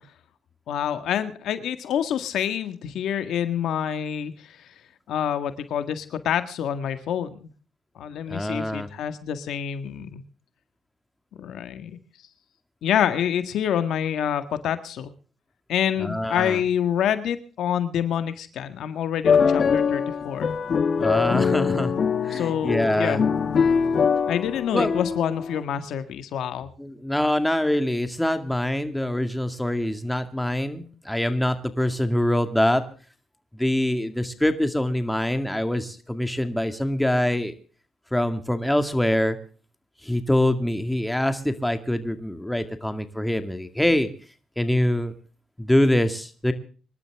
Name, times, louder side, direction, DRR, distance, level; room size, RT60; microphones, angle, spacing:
voice 1, 0.7-4.6 5.1-7.5 7.9-10.2 11.4-12.0 12.8-15.1 15.7-20.5 22.3-23.2 24.3-26.7, left 9 dB, 75° left, 10 dB, 1.7 m, -27 dB
voice 2, 8.3-8.9 16.0-16.6 21.0-21.9 22.2-23.2 24.7-24.9 26.8-32.8 33.5-37.5 38.1-39.4 40.0-44.1 44.6-45.1 45.6-46.5, left 1 dB, 5° left, 8 dB, 2.2 m, -24 dB
sound 1, 19.2-25.6, left 6 dB, 50° left, 1.4 m, -23 dB
25.0 x 12.0 x 3.6 m, 0.39 s
cardioid pair, 90°, 0 cm